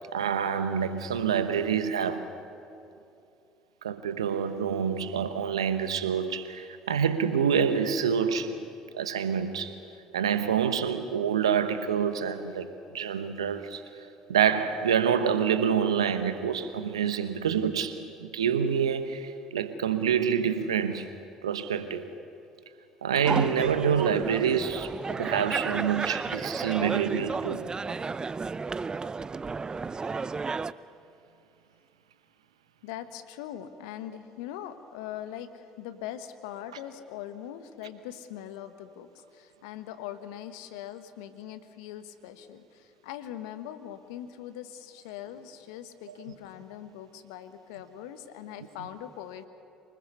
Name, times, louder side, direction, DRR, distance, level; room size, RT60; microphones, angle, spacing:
voice 1, 0.1-2.4 3.8-8.7 8.9-9.7 10.1-12.7 12.9-13.8 14.3-22.0 23.0-27.6, right 7 dB, 85° right, 1.0 m, -27 dB
sound 1, 23.2-30.7, right 4 dB, 25° right, 0.6 m, -32 dB
voice 2, 32.8-49.5, left 11 dB, 75° left, 1.2 m, -41 dB
24.5 x 20.0 x 6.9 m
hypercardioid pair, 55°, 3 cm